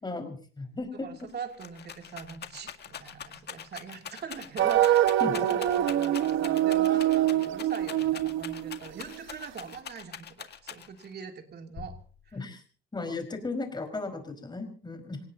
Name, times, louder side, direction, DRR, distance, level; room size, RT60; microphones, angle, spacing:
voice 1, 0.0-1.1 5.2-5.3 12.3-12.6 12.9-15.2, left 3 dB, 20° left, 6 dB, 5.1 m, -35 dB
Rattle, 0.8-0.9 1.2-11.1 11.8-12.4, left 8 dB, 55° left, 1.9 m, -43 dB
voice 2, 0.9-11.9 12.2-12.4, right 6 dB, 55° right, 4 dB, 3.0 m, -42 dB
sound 1, 4.6-9.4, right 12 dB, 80° right, 0.9 m, -25 dB
26.5 x 18.5 x 2.9 m, 0.43 s
cardioid pair, 90°, 20 cm